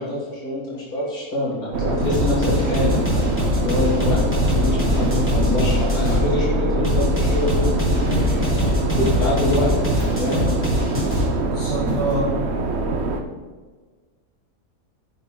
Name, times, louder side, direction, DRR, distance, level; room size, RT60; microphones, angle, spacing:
voice 1, 0.0-3.0 3.6-7.8 8.2-8.7 9.2-10.9, left 1 dB, 80° left, -7 dB, 3.4 m, -26 dB
sound 1, 1.7-13.2, right 2 dB, 50° right, 1.1 m, -23 dB
sound 2, 2.0-2.4 2.9-3.5 4.1-4.4 5.0-5.4 6.0-6.5 8.1-8.4 9.0-9.4 10.0-10.4 10.9-11.4 11.9-12.2, equal, 85° right, 3.4 m, -31 dB
sound 3, 2.1-6.2 6.8-11.3, left 1 dB, 10° left, 3.8 m, -23 dB
voice 2, 8.1-8.4 11.5-12.3, right 1 dB, 30° left, -4 dB, 1.6 m, -26 dB
10.5 x 10.0 x 3.9 m, 1.4 s
omnidirectional pair, 1.6 m